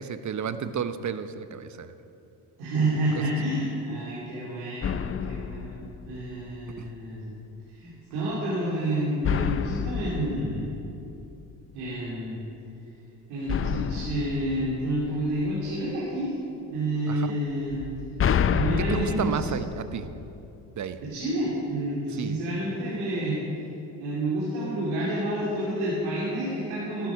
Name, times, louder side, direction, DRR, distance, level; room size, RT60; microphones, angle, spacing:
voice 1, 0.0-1.9 6.8-6.9 17.1-17.4 18.8-20.1 20.8-21.0 22.1-22.4, right 7 dB, 40° right, 11 dB, 0.9 m, -32 dB
voice 2, 2.6-5.8 6.1-7.3 7.7-10.7 11.7-12.4 13.3-16.4 16.7-17.8 18.5-19.5 21.0-23.4 24.0-27.1, right 1 dB, 85° right, -8 dB, 3.0 m, -29 dB
sound 1, 4.8-6.7 9.2-11.7 13.5-15.7 17.7-20.8, left 8 dB, 30° left, 0.5 m, -30 dB
13.5 x 12.0 x 4.8 m, 2.9 s
supercardioid pair, 65°, 47 cm